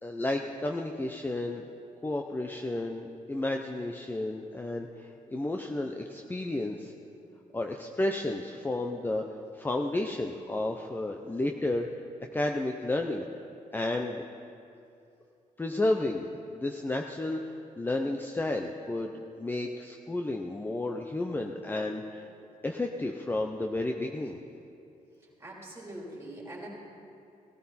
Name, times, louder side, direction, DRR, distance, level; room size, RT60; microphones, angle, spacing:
voice 1, 0.0-1.6 2.0-6.9 7.5-11.9 12.3-13.2 13.7-14.2 15.6-16.2 16.5-19.1 19.4-22.3 22.6-24.4, left 2 dB, 15° left, 3 dB, 0.6 m, -32 dB
voice 2, 25.2-26.7, right 1 dB, 15° right, -3 dB, 3.6 m, -43 dB
18.0 x 13.5 x 4.3 m, 2.6 s
cardioid pair, 115°, 14 cm